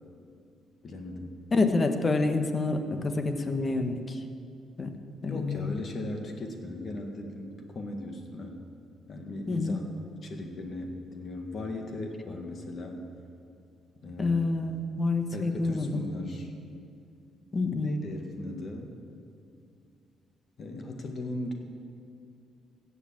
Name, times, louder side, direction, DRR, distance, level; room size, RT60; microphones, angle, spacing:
voice 1, 0.8-1.4 5.3-8.6 9.1-13.0 14.0-14.6 15.3-16.5 17.8-18.9 20.6-21.5, left 2 dB, 50° left, 3 dB, 1.9 m, -38 dB
voice 2, 1.5-4.2 4.8-4.9 5.2-5.7 9.5-9.8 14.2-16.0 17.5-17.9, left 3 dB, 35° left, 7 dB, 1.2 m, -27 dB
16.0 x 7.3 x 7.5 m, 2.5 s
cardioid pair, 95°, 0 cm